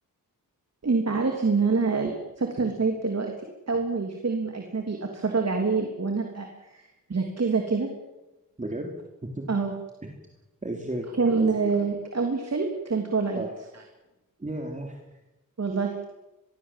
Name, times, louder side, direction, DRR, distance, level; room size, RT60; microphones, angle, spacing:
voice 1, 0.8-3.3 3.7-7.9 9.5-9.7 11.2-13.4 15.6-15.9, right 4 dB, 45° right, 3 dB, 3.2 m, -26 dB
voice 2, 8.6-8.9 9.2-9.5 10.0-10.1 10.6-11.5 13.3-13.5 14.4-15.0, right 1 dB, 20° right, 1 dB, 3.4 m, -33 dB
25.5 x 21.5 x 7.7 m, 1.0 s
wide cardioid pair, 145°, 35 cm